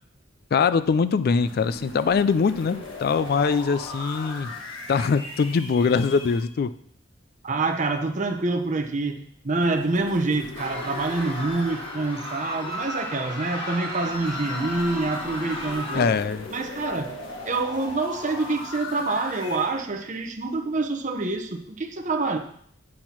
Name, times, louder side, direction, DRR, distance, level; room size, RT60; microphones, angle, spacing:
voice 1, 0.5-4.5 4.9-6.7 15.9-16.5, left 5 dB, 50° left, 0.3 m, -22 dB
sound 1, 1.4-6.4 9.5-13.3 14.0-19.8, left 2 dB, 75° left, 1.5 m, -39 dB
voice 2, 7.4-16.1 16.5-17.1 17.4-22.4, right 3 dB, 40° right, 0.8 m, -26 dB
sound 2, 10.6-16.0, left 1 dB, 25° left, 1.7 m, -34 dB
8.5 x 4.4 x 5.8 m
head